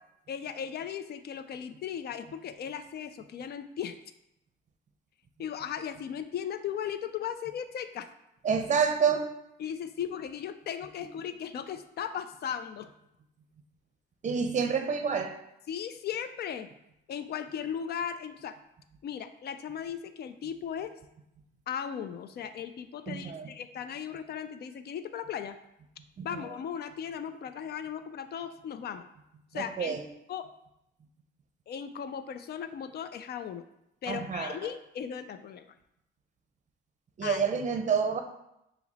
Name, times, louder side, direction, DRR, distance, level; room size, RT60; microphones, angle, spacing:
voice 1, 0.3-4.0 5.4-8.1 9.6-12.9 15.7-16.7 17.1-18.6 19.0-21.0 21.7-25.6 26.2-29.1 29.5-30.0 30.3-30.5 31.7-33.6 34.0-35.7 37.2-37.4, left 8 dB, 55° left, 11 dB, 0.4 m, -37 dB
voice 2, 8.4-9.3 14.2-15.3 23.1-23.5 26.2-26.3 29.5-30.0 34.1-34.5 37.2-38.2, right 6 dB, 35° right, 6 dB, 0.6 m, -28 dB
5.7 x 2.0 x 4.1 m, 0.83 s
cardioid pair, 90°, 20 cm